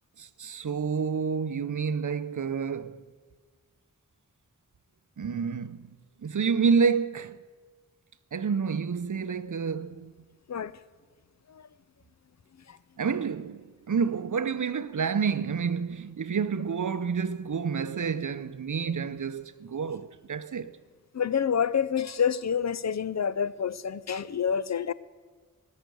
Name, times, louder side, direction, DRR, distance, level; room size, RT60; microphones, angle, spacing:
voice 1, 0.2-3.1 5.2-6.0 6.2-7.4 8.3-10.1 13.0-20.8, right 6 dB, 70° right, 0.7 m, -29 dB
voice 2, 21.1-24.9, left 7 dB, 55° left, 0.5 m, -28 dB
18.5 x 6.5 x 9.2 m
wide cardioid pair, 75°, 32 cm